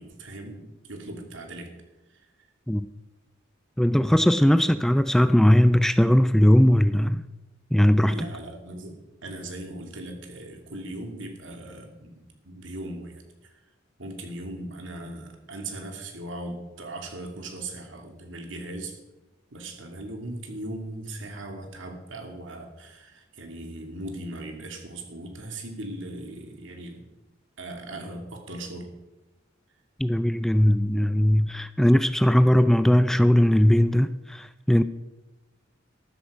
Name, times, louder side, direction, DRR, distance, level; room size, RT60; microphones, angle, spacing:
voice 1, 0.0-1.7 2.1-2.2 8.1-13.6 14.0-19.0 19.5-27.1 27.6-28.9, right 1 dB, 75° right, 2.6 m, -38 dB
voice 2, 3.8-7.2 7.7-8.3 30.0-34.8, equal, ahead, 0.3 m, -19 dB
13.0 x 12.5 x 5.0 m
head